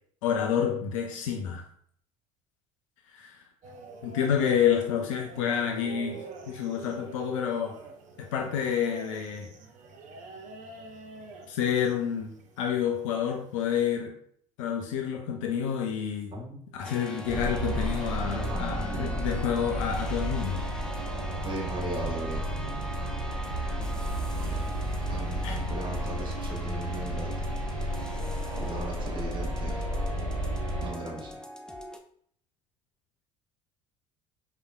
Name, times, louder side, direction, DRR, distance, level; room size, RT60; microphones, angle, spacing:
voice 1, 0.2-1.6 3.1-3.3 4.0-7.8 8.2-9.5 11.5-12.3 12.6-14.1 14.6-16.3 16.7-20.6 25.4-25.6, left 8 dB, 70° left, 3 dB, 0.4 m, -29 dB
sound 1, 3.6-13.8, right 4 dB, 45° right, 0.6 m, -46 dB
voice 2, 16.3-16.7 18.3-19.1 21.3-22.5 24.4-24.7 25.1-27.3 28.5-29.9 30.2-30.4 30.8-31.4, right 1 dB, 30° right, -2 dB, 1.0 m, -38 dB
sound 2, 16.8-32.0, left 1 dB, 5° left, 0.4 m, -42 dB
sound 3, 17.3-30.9, right 1 dB, 80° right, 0.7 m, -32 dB
4.6 x 2.2 x 2.3 m, 0.63 s
figure-of-eight pair, 60°, 17 cm